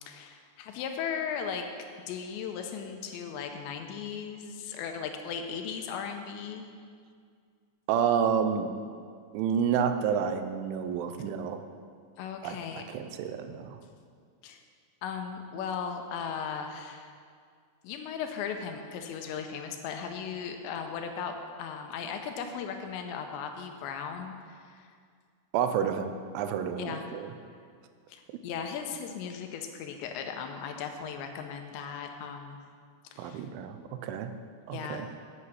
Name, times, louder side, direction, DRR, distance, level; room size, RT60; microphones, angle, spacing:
voice 1, 0.0-1.7 2.1-6.7 12.2-12.8 14.4-14.6 15.0-17.1 17.8-24.9 26.8-27.1 28.1-32.6 33.1-33.5 34.7-35.2, left 7 dB, 80° left, 5 dB, 2.8 m, -37 dB
voice 2, 7.9-8.7 9.3-11.6 12.4-12.6 12.9-13.8 25.5-27.3 33.2-34.3 34.7-35.1, right 7 dB, 85° right, 8 dB, 3.1 m, -29 dB
8.5 x 7.8 x 8.1 m, 2.1 s
omnidirectional pair, 5.3 m